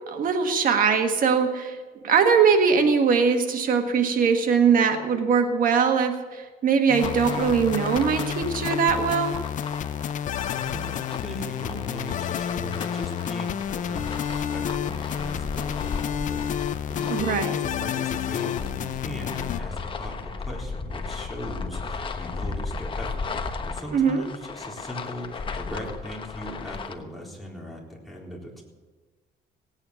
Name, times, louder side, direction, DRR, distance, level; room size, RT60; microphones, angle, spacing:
voice 1, 0.1-1.8 2.0-9.4 17.1-17.6 23.9-24.2, right 6 dB, 55° right, 6 dB, 1.5 m, -21 dB
sound 1, 6.9-19.6, left 9 dB, 50° left, 0.6 m, -30 dB
sound 2, 7.0-26.9, left 4 dB, 30° left, 1.1 m, -35 dB
voice 2, 10.5-28.6, equal, ahead, -3 dB, 3.8 m, -39 dB
17.5 x 9.0 x 7.0 m, 1.3 s
cardioid pair, 110°, 17 cm